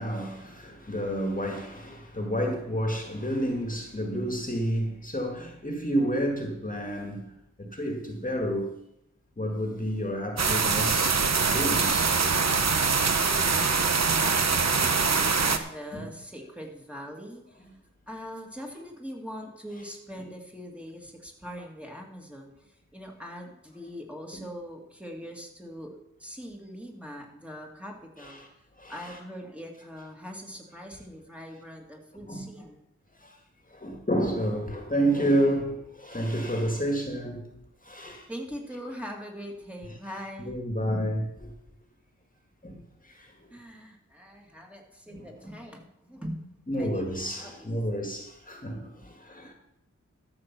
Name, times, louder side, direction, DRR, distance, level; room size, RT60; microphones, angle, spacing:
voice 1, 0.0-7.3 7.6-8.8 9.4-12.3 15.9-16.0 28.2-28.5 28.8-29.2 32.3-32.5 33.2-33.4 33.7-37.6 37.8-38.3 40.4-41.5 42.6-43.3 45.1-45.5 46.7-49.5, equal, 25° left, 2.0 m, -30 dB
sound 1, 10.4-15.6, right 5 dB, 60° right, 1.0 m, -24 dB
voice 2, 12.6-17.7 18.1-28.4 28.9-32.8 38.3-40.6 43.5-47.7 49.0-49.1, equal, 5° right, 2.3 m, -42 dB
13.0 x 6.8 x 6.0 m
wide cardioid pair, 70°, 31 cm